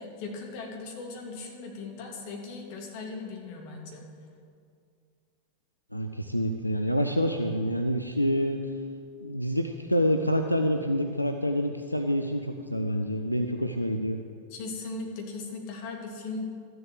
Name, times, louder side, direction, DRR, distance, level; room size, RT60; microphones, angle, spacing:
voice 1, 0.0-4.1 14.5-16.4, left 3 dB, 45° left, 0 dB, 2.7 m, -38 dB
voice 2, 5.9-8.6 9.2-14.2, equal, 90° left, 6 dB, 0.6 m, -27 dB
13.5 x 7.8 x 7.7 m, 2.3 s
figure-of-eight pair, 90°, 0 cm